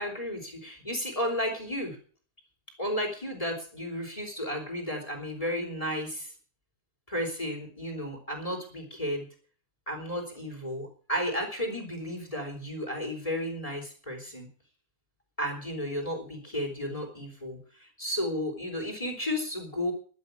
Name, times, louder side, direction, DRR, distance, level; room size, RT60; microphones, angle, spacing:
voice 1, 0.0-2.0 2.8-6.3 7.1-9.3 9.9-14.5 15.4-19.9, equal, 10° left, 2 dB, 3.4 m, -33 dB
12.0 x 9.3 x 8.2 m, 0.42 s
omnidirectional pair, 4.4 m